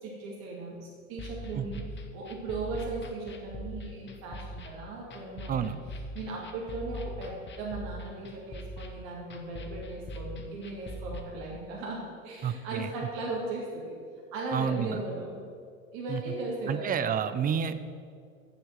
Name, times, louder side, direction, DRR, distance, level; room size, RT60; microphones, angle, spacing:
voice 1, 0.0-1.8 2.1-5.7 6.1-14.0 14.3-15.4 15.9-16.9, right 2 dB, 55° right, -3 dB, 2.3 m, -37 dB
sound 1, 1.2-11.2, equal, 25° left, 1.2 m, -42 dB
voice 2, 12.4-12.9 14.5-15.0 16.1-16.2 16.7-17.8, right 8 dB, 20° right, 12 dB, 0.5 m, -29 dB
8.3 x 7.0 x 7.4 m, 2.2 s
hypercardioid pair, 85°, 40 cm